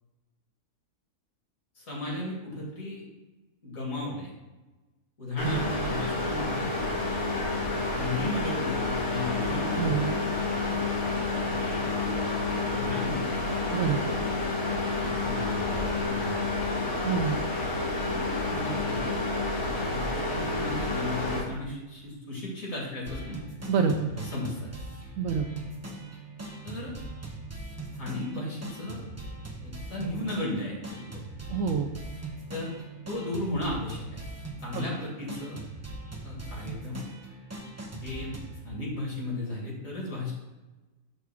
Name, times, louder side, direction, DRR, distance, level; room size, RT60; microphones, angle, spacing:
voice 1, 1.8-3.0 3.6-4.3 5.2-6.7 7.9-10.3 11.5-11.8 12.6-13.4 14.9-16.6 18.1-19.2 19.7-23.4 24.0-24.7 26.6-26.9 27.9-29.1 29.6-31.1 31.5-31.6 32.5-32.7 33.1-34.2 34.6-35.6 36.2-37.0 38.0-38.4 38.6-40.3, left 1 dB, 55° left, -3 dB, 2.3 m, -35 dB
sound 1, 5.4-21.4, left 3 dB, 75° left, 2.4 m, -29 dB
voice 2, 9.7-10.1 13.7-14.0 17.0-17.4 23.7-24.1 25.2-25.5 31.5-31.9 34.7-34.9, right 7 dB, 70° right, 5 dB, 0.9 m, -27 dB
sound 2, 23.1-38.6, right 2 dB, 20° right, 0.4 m, -41 dB
6.6 x 3.5 x 6.1 m, 1.1 s
omnidirectional pair, 1.7 m